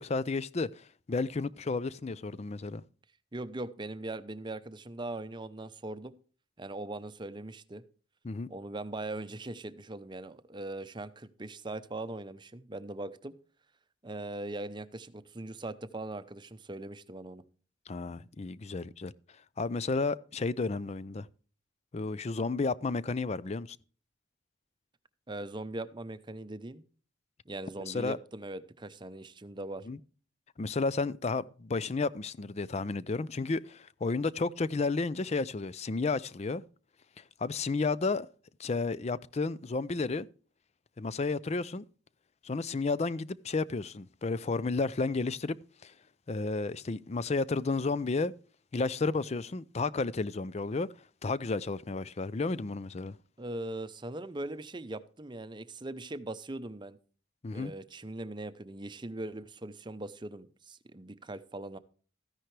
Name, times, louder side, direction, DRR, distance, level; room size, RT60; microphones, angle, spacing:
voice 1, 0.0-2.8 8.2-8.5 17.9-19.1 19.6-21.3 21.9-23.8 27.9-28.2 29.9-30.0 30.6-36.6 37.4-38.3 38.6-40.3 41.0-41.8 42.4-45.6 45.8-45.9 46.3-48.3 48.7-50.9 51.2-53.2 57.4-57.7, left 3 dB, 35° left, 0.4 m, -32 dB
voice 2, 3.3-6.1 6.6-7.8 8.5-13.3 14.0-17.4 25.3-26.8 27.5-29.9 53.4-57.0 57.5-61.8, right 2 dB, 25° right, 0.7 m, -40 dB
14.0 x 10.5 x 3.3 m
head